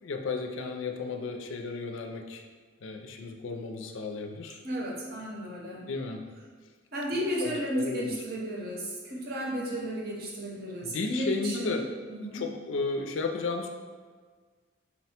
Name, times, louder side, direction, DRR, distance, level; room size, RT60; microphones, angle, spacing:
voice 1, 0.0-2.4 2.8-4.6 5.9-6.2 7.4-8.1 10.8-11.9 12.3-13.7, left 4 dB, 75° left, 4 dB, 0.4 m, -33 dB
voice 2, 4.6-5.9 6.9-11.8 12.1-12.4, equal, 50° right, -2 dB, 0.7 m, -33 dB
4.2 x 2.1 x 4.2 m, 1.5 s
head